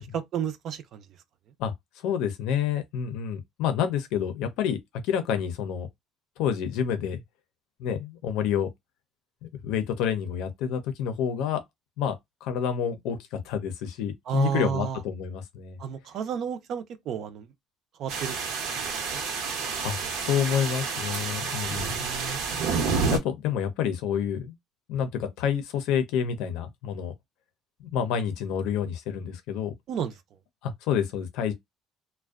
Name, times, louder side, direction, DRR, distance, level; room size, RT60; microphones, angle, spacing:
voice 1, 0.1-1.0 14.3-15.0 15.8-17.5 18.0-18.4 18.7-19.2 21.7-22.4 29.9-30.1, right 7 dB, 50° right, 0.4 m, -32 dB
voice 2, 2.0-4.8 5.0-5.9 6.4-7.2 7.8-8.7 9.4-11.6 12.0-12.1 12.4-15.8 19.8-20.0 20.2-22.1 23.1-24.5 24.9-27.1 27.8-29.7 30.6-31.5, left 8 dB, 75° left, 0.5 m, -28 dB
sound 1, 18.1-23.2, right 5 dB, 85° right, 0.8 m, -29 dB
2.5 x 2.1 x 2.3 m
cardioid pair, 145°, 0 cm